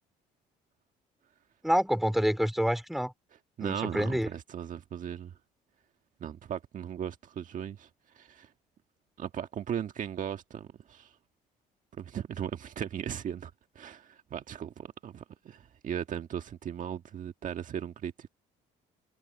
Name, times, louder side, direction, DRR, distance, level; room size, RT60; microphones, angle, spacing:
voice 1, 1.6-3.1 3.6-4.3, equal, ahead, 3.9 m, -27 dB
voice 2, 3.6-5.3 6.2-7.9 8.1-8.5 9.2-11.1 11.9-18.3, right 9 dB, 50° right, 1.5 m, -37 dB
cardioid pair, 110°, 17 cm